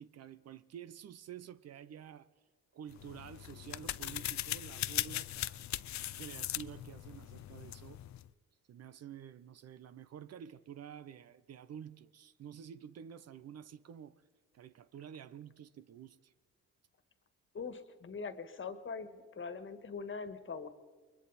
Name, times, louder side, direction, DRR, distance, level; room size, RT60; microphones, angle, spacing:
voice 1, 0.0-2.3 2.7-5.8 6.2-8.0 8.7-14.2 14.5-16.3, right 9 dB, 55° right, 0.7 m, -50 dB
sound 1, 2.9-8.3, left 14 dB, 65° left, 0.6 m, -39 dB
voice 2, 17.5-20.7, left 5 dB, 40° left, 1.7 m, -42 dB
29.0 x 22.0 x 4.2 m
cardioid pair, 90°, 30 cm